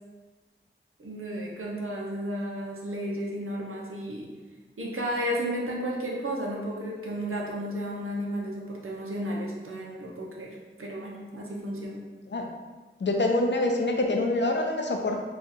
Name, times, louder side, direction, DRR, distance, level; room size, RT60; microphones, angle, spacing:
voice 1, 1.0-4.3 4.8-12.0, equal, 80° right, -3 dB, 0.7 m, -33 dB
voice 2, 13.0-15.2, left 2 dB, 60° left, 2 dB, 0.5 m, -25 dB
2.9 x 2.4 x 4.1 m, 1.3 s
wide cardioid pair, 45°, 21 cm